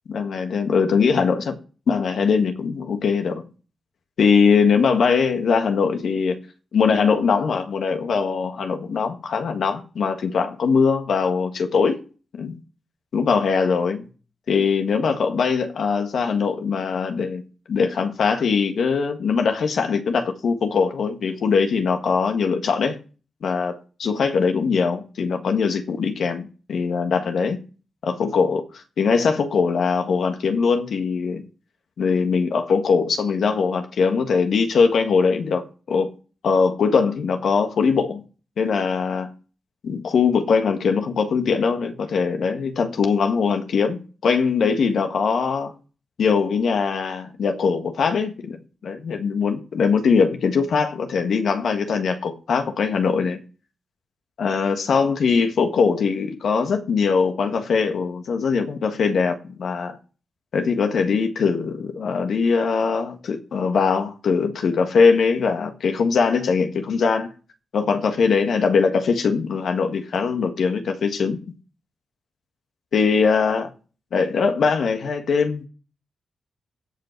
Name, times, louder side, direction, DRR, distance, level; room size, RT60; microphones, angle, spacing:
voice 1, 0.1-1.5 1.9-3.4 4.2-6.4 6.7-12.0 12.3-12.6 13.1-14.0 14.5-17.4 17.7-23.0 23.4-27.6 28.0-31.4 32.0-35.6 35.9-36.1 36.4-38.2 38.6-39.3 39.8-45.7 46.2-48.6 48.8-53.4 54.4-60.0 60.5-67.3 67.7-71.4 72.9-73.7 74.1-75.7, left 5 dB, 75° left, 1.5 m, -21 dB
16.5 x 5.7 x 4.5 m
cardioid pair, 65°, 0 cm